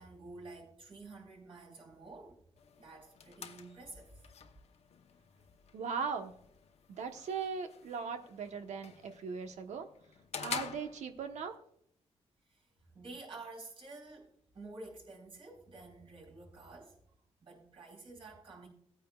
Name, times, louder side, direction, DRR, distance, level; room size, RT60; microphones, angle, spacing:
voice 1, 0.0-2.4 2.8-4.2 12.5-12.7 12.9-17.0 17.4-18.7, right 3 dB, 50° right, 4.6 m, -50 dB
sound 1, 2.6-11.6, left 7 dB, 65° left, 0.9 m, -48 dB
voice 2, 5.7-6.3 7.0-9.9 10.4-11.5, right 5 dB, 80° right, 1.1 m, -39 dB
17.5 x 9.2 x 2.4 m
cardioid pair, 105°, 12 cm